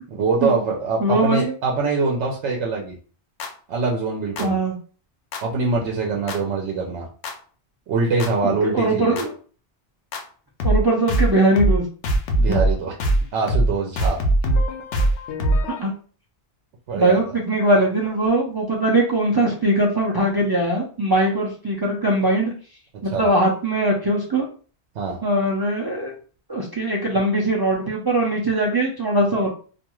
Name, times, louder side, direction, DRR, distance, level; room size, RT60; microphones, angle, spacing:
voice 1, 0.1-3.0 3.7-4.6 5.4-7.1 7.9-9.2 12.4-12.9 13.3-14.2 16.9-17.2 22.9-23.3 24.9-25.2, right 4 dB, 90° right, -1 dB, 0.9 m, -23 dB
voice 2, 1.0-1.5 4.4-4.7 8.7-9.3 10.6-11.8 12.5-12.6 15.8-15.9 17.0-22.5 23.0-24.4 25.2-26.1 26.5-29.5, right 1 dB, 40° right, -3 dB, 0.3 m, -20 dB
sound 1, 3.4-3.5 4.4-4.5 5.3-5.4 6.3-6.4 7.2-7.3 8.2-8.3 9.2-9.3 10.1-10.2 10.6-10.8 11.1-11.3 11.6-11.8 12.0-12.7 13.0-13.2 13.5-13.7 14.0-15.8, right 1 dB, 85° left, 0.9 m, -20 dB
2.5 x 2.3 x 2.9 m, 0.40 s
omnidirectional pair, 1.1 m